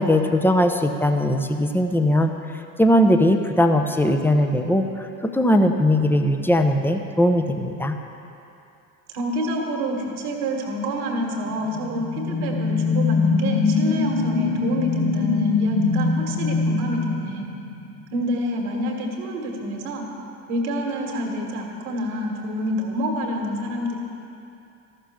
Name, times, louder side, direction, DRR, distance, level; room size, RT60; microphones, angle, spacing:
voice 1, 0.0-2.3 2.8-5.1 5.3-7.9, left 1 dB, 5° left, 5 dB, 0.8 m, -19 dB
voice 2, 9.1-17.5 18.1-20.1 20.5-24.0, equal, 70° right, 1 dB, 1.9 m, -27 dB
sound 1, 11.5-18.0, left 4 dB, 65° left, 2.1 m, -23 dB
13.5 x 6.7 x 6.3 m, 2.7 s
hypercardioid pair, 65°, 45 cm